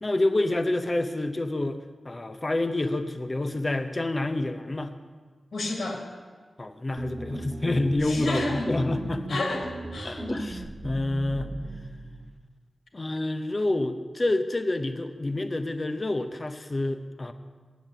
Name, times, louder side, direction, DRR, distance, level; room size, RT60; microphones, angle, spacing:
voice 1, 0.0-4.9 6.6-9.4 10.0-11.5 12.9-17.3, left 2 dB, 30° left, 8 dB, 0.7 m, -28 dB
voice 2, 5.5-6.0 8.0-8.8 9.3-10.3, left 1 dB, 85° left, 1 dB, 2.2 m, -30 dB
sound 1, 7.0-12.3, right 2 dB, 35° right, 1.0 m, -38 dB
8.2 x 7.9 x 9.0 m, 1.5 s
wide cardioid pair, 90°, 0 cm